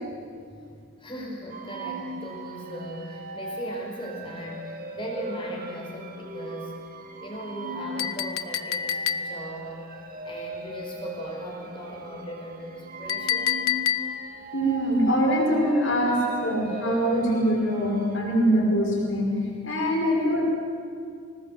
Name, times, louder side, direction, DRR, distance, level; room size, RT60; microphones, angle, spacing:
voice 1, 1.0-6.7 7.2-13.6, equal, 25° left, -1 dB, 5.1 m, -38 dB
sound 1, 1.5-18.2, right 1 dB, 40° right, 2.0 m, -39 dB
Chink clink, 8.0-9.6 13.1-14.4, left 9 dB, 75° left, 0.9 m, -28 dB
voice 2, 14.5-19.3 19.6-20.4, equal, 60° left, -2 dB, 5.7 m, -23 dB
26.0 x 19.5 x 8.1 m, 2.2 s
head